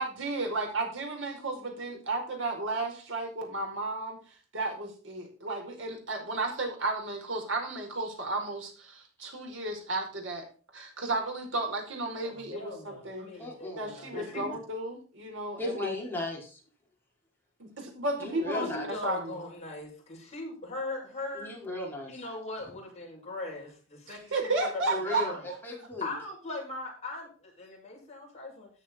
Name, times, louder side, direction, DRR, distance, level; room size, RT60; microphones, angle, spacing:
voice 1, 0.0-4.2 4.5-10.5 10.7-13.3 13.8-15.9 17.6-18.7 19.0-19.4 24.1-25.6, right 2 dB, 70° right, 2 dB, 5.1 m, -33 dB
voice 2, 12.2-14.5 18.6-21.6 22.1-25.4 26.0-28.7, left 2 dB, 35° left, -2 dB, 7.2 m, -40 dB
voice 3, 13.4-14.5 15.6-16.5 18.2-18.8 21.4-22.1 24.9-25.3 25.6-26.1, left 2 dB, 10° left, -3 dB, 5.2 m, -36 dB
14.0 x 8.7 x 4.5 m, 0.39 s
head